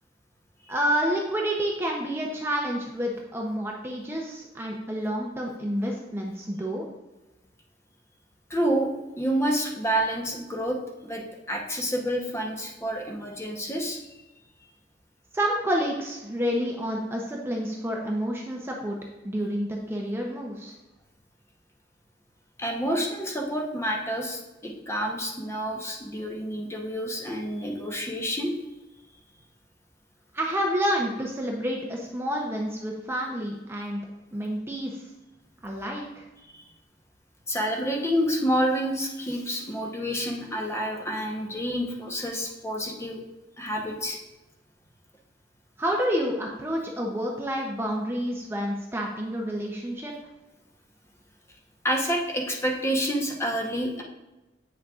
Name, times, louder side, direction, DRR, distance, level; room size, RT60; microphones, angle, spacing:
voice 1, 0.7-6.9 15.3-19.0 19.2-20.7 30.3-34.0 34.3-35.1 35.6-36.3 45.8-50.1, equal, 15° right, -1 dB, 0.7 m, -29 dB
voice 2, 8.5-8.9 9.2-14.0 22.6-28.5 36.5-36.7 37.5-43.2 43.6-44.2 51.8-54.0, equal, 15° left, 0 dB, 0.9 m, -28 dB
8.3 x 6.3 x 2.4 m, 1.0 s
head